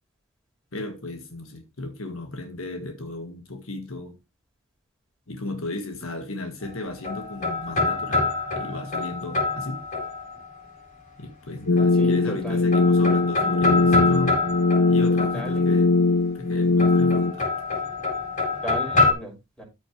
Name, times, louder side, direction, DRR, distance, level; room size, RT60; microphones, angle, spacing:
voice 1, 0.7-4.2 5.3-8.3 8.5-9.8 11.2-14.4 14.9-16.0 16.3-17.5, left 2 dB, 65° left, 1.6 m, -34 dB
sound 1, 6.6-10.6 11.8-12.4 12.7-15.9 16.8-19.1, left 3 dB, 35° left, 4.3 m, -26 dB
sound 2, 11.7-17.3, left 3 dB, 90° left, 1.4 m, -20 dB
voice 2, 12.0-12.7 15.3-15.6 18.6-19.6, equal, 5° left, 4.9 m, -35 dB
13.5 x 6.3 x 3.2 m
head